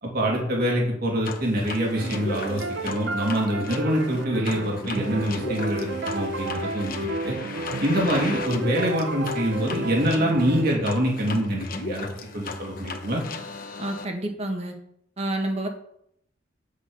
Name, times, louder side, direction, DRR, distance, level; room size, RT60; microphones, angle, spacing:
voice 1, 0.0-7.3 7.8-12.1 12.3-13.2, equal, 55° right, -2 dB, 2.9 m, -25 dB
sound 1, 1.2-14.1, left 3 dB, 50° left, 1.2 m, -36 dB
sound 2, 1.9-10.9, right 2 dB, 75° right, 0.8 m, -32 dB
voice 2, 13.8-14.8 15.2-15.7, right 1 dB, 35° right, 3 dB, 1.8 m, -29 dB
8.8 x 8.4 x 5.6 m, 0.71 s
head